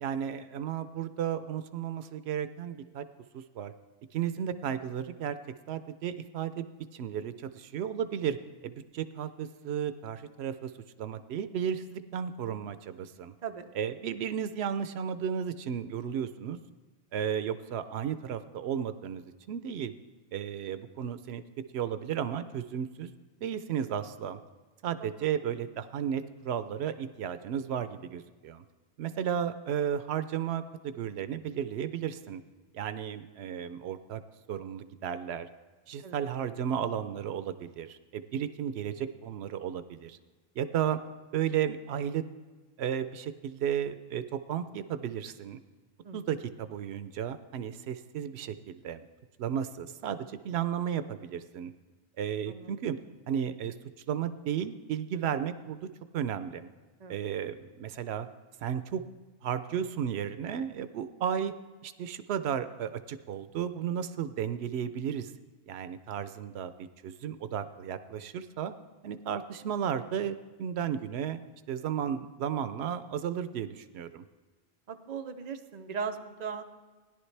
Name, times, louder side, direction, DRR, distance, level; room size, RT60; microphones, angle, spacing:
voice 1, 0.0-3.1 3.3-3.7 4.1-5.4 5.7-6.7 6.9-10.7 11.0-13.3 13.7-16.6 17.1-19.9 20.3-21.4 21.7-23.1 23.4-24.4 24.8-28.6 29.0-32.4 32.7-34.2 34.5-35.5 35.9-40.2 40.6-41.0 41.3-42.2 42.8-45.6 46.1-49.1 49.4-51.7 52.2-53.0 53.3-53.7 54.1-55.9 56.1-56.7 57.1-58.3 58.6-59.0 59.4-61.5 61.8-65.3 65.7-68.7 69.0-71.4 71.7-74.2, right 9 dB, 85° right, 12 dB, 0.8 m, -34 dB
voice 2, 74.9-76.6, right 6 dB, 45° right, 6 dB, 0.7 m, -38 dB
16.5 x 10.5 x 3.3 m, 1.3 s
omnidirectional pair, 1.1 m